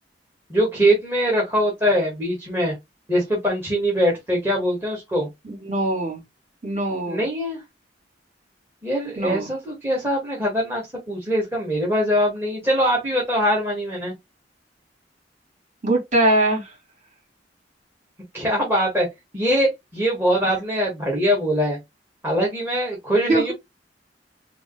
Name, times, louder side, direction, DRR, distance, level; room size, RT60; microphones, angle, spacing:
voice 1, 0.5-2.7 3.1-5.3 7.1-7.6 8.8-10.8 11.1-14.1 18.3-19.1 19.3-21.8 22.2-23.5, equal, 15° right, 1.9 m, -22 dB
voice 2, 5.6-6.2 6.6-7.2 9.2-9.5 15.8-16.7 23.3-23.4, right 1 dB, 40° right, 3.3 m, -21 dB
5.3 x 2.9 x 3.2 m
head